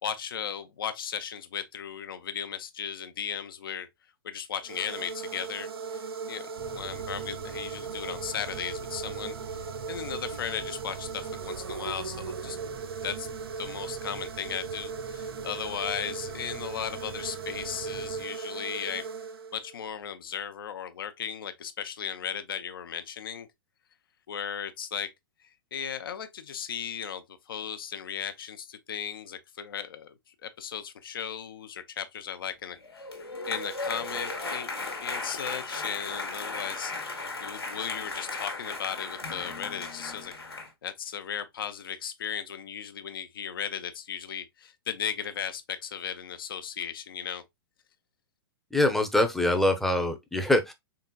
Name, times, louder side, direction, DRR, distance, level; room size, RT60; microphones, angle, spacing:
voice 1, 0.0-3.9 4.2-12.6 13.0-13.3 13.6-19.1 19.5-23.5 24.3-25.1 25.4-30.1 30.4-32.8 33.5-36.9 37.4-40.3 40.8-47.4, left 8 dB, 65° left, 0.6 m, -36 dB
sound 1, 4.6-19.8, right 5 dB, 75° right, 0.5 m, -38 dB
sound 2, 6.6-18.2, right 7 dB, 55° right, 0.9 m, -45 dB
sound 3, 32.8-40.7, left 3 dB, 85° left, 1.1 m, -36 dB
voice 2, 48.7-50.7, left 1 dB, ahead, 0.6 m, -24 dB
3.8 x 3.6 x 2.2 m
figure-of-eight pair, 110°, 13 cm